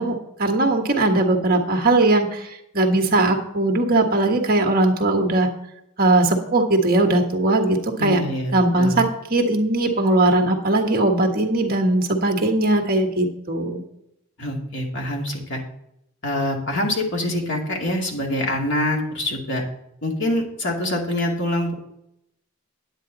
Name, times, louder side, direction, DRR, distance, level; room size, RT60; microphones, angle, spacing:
voice 1, 0.0-5.5 6.0-8.2 8.5-13.8, right 2 dB, 40° right, 3 dB, 1.5 m, -19 dB
voice 2, 8.0-9.0 14.4-15.6 16.2-19.6 20.0-21.7, left 1 dB, 55° left, 0 dB, 2.4 m, -25 dB
9.9 x 8.9 x 4.0 m, 0.79 s
head